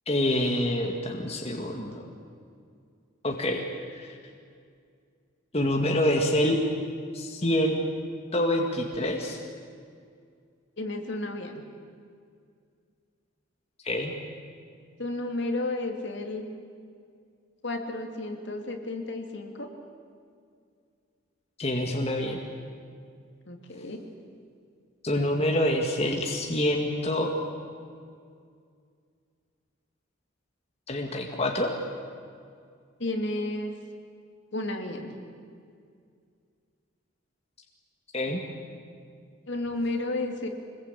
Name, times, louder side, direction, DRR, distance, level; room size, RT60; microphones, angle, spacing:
voice 1, 0.1-2.0 3.2-3.6 4.0-4.1 5.5-6.6 7.1-7.9 8.3-9.4 13.8-14.1 21.6-22.4 25.0-27.3 30.9-31.7 38.1-38.4, left 1 dB, 30° left, 1 dB, 1.9 m, -26 dB
voice 2, 10.8-11.6 15.0-16.4 17.6-19.7 23.5-24.0 33.0-33.7 34.5-35.1 39.5-40.5, left 2 dB, 60° left, 4 dB, 2.7 m, -32 dB
26.0 x 21.0 x 8.7 m, 2.2 s
head